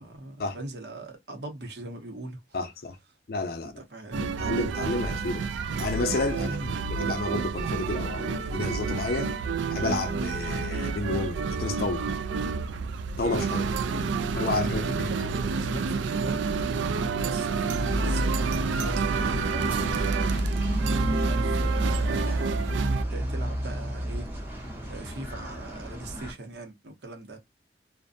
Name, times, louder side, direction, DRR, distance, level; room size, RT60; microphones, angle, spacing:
voice 1, 0.0-2.6 3.6-4.4 6.4-7.0 13.8-20.5 21.0-22.8 23.1-24.3 24.9-27.4, right 2 dB, 70° right, 0.8 m, -40 dB
voice 2, 2.5-3.0 3.3-3.7 4.1-5.5 5.8-9.3 9.7-12.1 13.2-13.8 14.4-15.1, left 3 dB, 55° left, 0.4 m, -31 dB
sound 1, 4.1-23.0, right 5 dB, 85° right, 0.3 m, -29 dB
sound 2, 17.7-26.3, equal, 10° right, 0.8 m, -30 dB
2.6 x 2.2 x 2.5 m
head